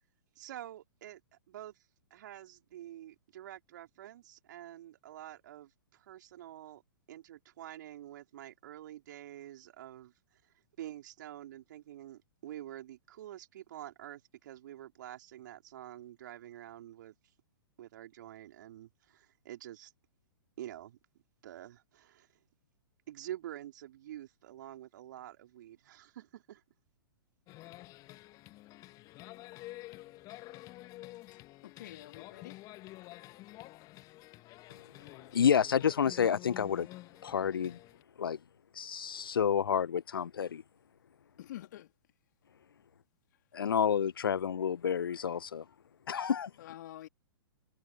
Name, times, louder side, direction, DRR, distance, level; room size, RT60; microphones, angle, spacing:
voice 1, 0.4-1.2 1.5-1.9 2.1-6.8 7.1-17.1 17.8-19.9 20.6-21.0 21.4-22.3 23.1-26.6, right 12 dB, 55° right, 3.7 m, -47 dB
sound 1, 27.5-38.0, left 18 dB, 30° left, 1.3 m, -49 dB
voice 2, 31.3-32.6 41.4-41.9 46.6-47.1, left 13 dB, 50° left, 3.0 m, -48 dB
voice 3, 35.3-36.9 37.2-37.8 38.2-38.4 38.8-40.6 43.5-45.6 46.1-46.5, left 7 dB, 70° left, 0.6 m, -29 dB
figure-of-eight pair, 115°, 12 cm